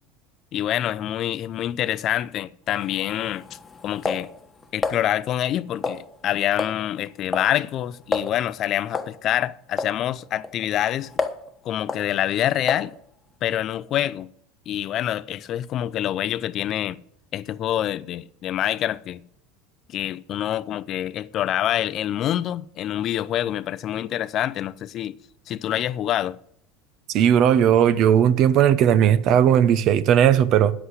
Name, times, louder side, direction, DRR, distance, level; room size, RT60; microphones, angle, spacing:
voice 1, 0.5-3.4 3.8-4.3 4.7-11.1 11.6-12.9 13.4-14.3 14.7-17.0 17.3-19.2 19.9-25.2 25.5-26.4, left 12 dB, 45° left, 0.5 m, -26 dB
sound 1, 2.7-5.0 5.8-6.3 6.6-6.8 7.1-7.5 7.8-7.9 8.1-8.3 8.9-9.2 9.8-10.0 10.4-11.5 11.9-12.1 12.7-12.9, left 4 dB, 15° left, 1.2 m, -29 dB
voice 2, 27.1-30.7, right 9 dB, 55° right, 0.8 m, -17 dB
9.9 x 8.0 x 8.1 m
hypercardioid pair, 100°, 0 cm